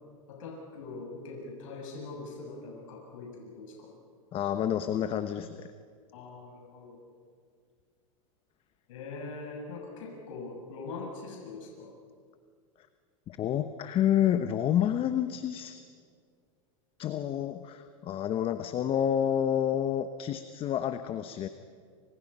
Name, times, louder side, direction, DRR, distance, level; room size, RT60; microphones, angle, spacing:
voice 1, 0.3-3.9 6.1-7.0 8.9-12.0, left 3 dB, 70° left, -1 dB, 6.9 m, -42 dB
voice 2, 4.3-5.7 13.3-15.8 17.0-21.5, left 10 dB, 30° left, 10 dB, 1.1 m, -29 dB
29.0 x 26.5 x 5.6 m, 2.1 s
supercardioid pair, 125°, 17 cm